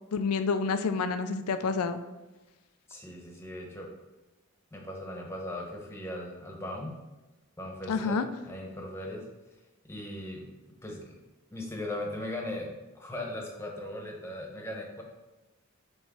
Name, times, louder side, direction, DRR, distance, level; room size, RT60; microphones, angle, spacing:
voice 1, 0.1-2.0 7.9-8.2, left 4 dB, 90° left, 10 dB, 0.4 m, -28 dB
voice 2, 2.9-3.9 4.7-7.0 7.6-9.2 9.8-10.5 10.8-11.2 11.5-15.0, left 1 dB, 10° left, 0 dB, 1.0 m, -38 dB
7.4 x 3.2 x 4.7 m, 1.1 s
head